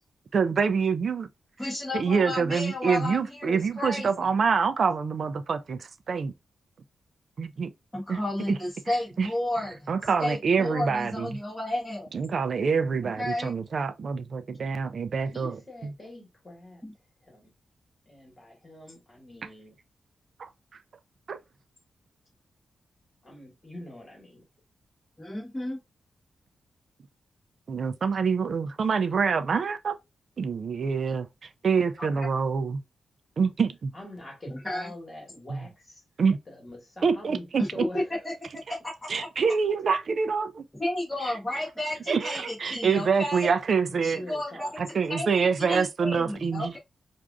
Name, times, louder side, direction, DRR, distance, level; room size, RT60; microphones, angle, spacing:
voice 1, 0.3-1.3 1.9-6.3 7.4-7.7 8.1-8.2 8.5-8.6 9.2-9.3 9.9-11.4 12.1-15.6 20.4-20.5 21.3-21.4 27.7-30.0 30.4-32.8 33.4-33.9 35.5-35.6 36.2-36.4 37.0-37.9 39.1-40.6 42.1-44.2 44.8-46.8, right 5 dB, 55° right, 0.4 m, -26 dB
voice 2, 1.6-4.1 7.9-9.9 10.2-12.1 13.2-13.5 16.8-16.9 25.2-25.8 32.0-32.1 34.5-34.9 37.6-37.7 37.9-38.3 39.2-39.3 40.8-43.5 44.0-44.7 45.1-45.3 45.7-46.8, left 1 dB, 5° left, 1.4 m, -32 dB
voice 3, 15.3-16.8 17.2-17.5 18.1-19.8 23.2-24.5 33.9-36.0 36.5-38.3 42.0-42.1 43.9-44.8, left 1 dB, 25° left, 1.8 m, -44 dB
4.5 x 2.5 x 2.5 m
wide cardioid pair, 125°, 0 cm